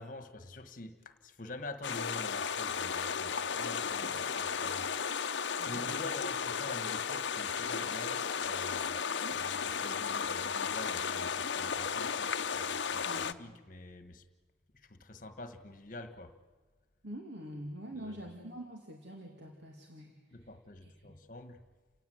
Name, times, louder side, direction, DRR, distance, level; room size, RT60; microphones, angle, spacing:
voice 1, 0.0-14.3 14.7-16.3 17.9-18.2 20.3-21.6, left 2 dB, 45° left, 9 dB, 1.5 m, -47 dB
sound 1, 1.8-13.3, left 6 dB, 70° left, 0.7 m, -34 dB
voice 2, 5.6-6.0 9.2-9.4 13.0-13.4 17.0-20.1 20.8-21.1, equal, 70° right, 2 dB, 2.5 m, -45 dB
29.5 x 16.5 x 9.4 m, 1.4 s
head